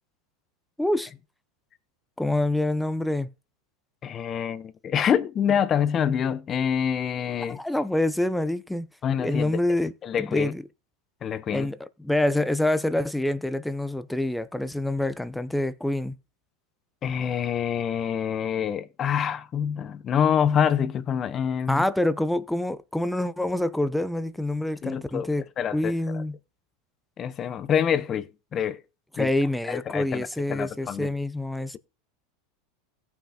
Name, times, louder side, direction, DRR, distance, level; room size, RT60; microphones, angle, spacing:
voice 1, 0.8-1.1 2.2-3.3 7.5-8.9 9.2-9.9 10.2-10.6 11.5-16.1 21.7-25.4 25.7-26.4 29.2-31.8, left 1 dB, 5° left, 0.7 m, -26 dB
voice 2, 4.0-7.6 9.0-9.6 10.0-10.5 11.2-11.7 17.0-21.8 24.8-25.3 25.6-26.2 27.2-28.8 29.2-29.3 29.7-31.1, left 8 dB, 35° left, 0.9 m, -26 dB
17.0 x 5.8 x 2.9 m
hypercardioid pair, 105°, 0 cm